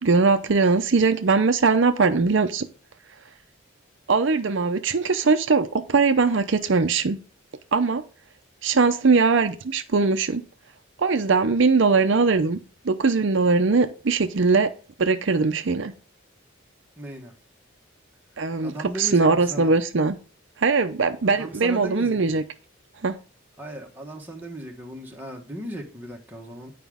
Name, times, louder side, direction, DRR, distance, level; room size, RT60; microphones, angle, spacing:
voice 1, 0.0-2.7 4.1-7.2 7.7-8.0 8.6-10.4 11.0-12.6 12.8-14.7 15.0-15.9 18.4-20.1 20.6-22.4 23.0-23.2, right 4 dB, 65° right, 0.6 m, -21 dB
voice 2, 17.0-17.3 18.6-19.7 21.2-22.4 23.6-26.7, right 1 dB, 10° right, 1.3 m, -37 dB
9.2 x 5.0 x 3.5 m
head